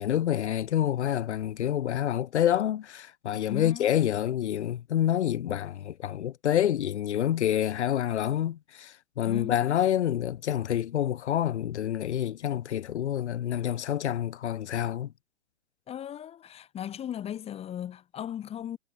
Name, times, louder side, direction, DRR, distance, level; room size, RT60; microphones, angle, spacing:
voice 1, 0.0-15.1, left 11 dB, 80° left, 0.6 m, -27 dB
voice 2, 3.3-4.0 9.2-9.7 15.9-18.8, left 10 dB, 20° left, 0.8 m, -37 dB
hypercardioid pair, 110°, 34 cm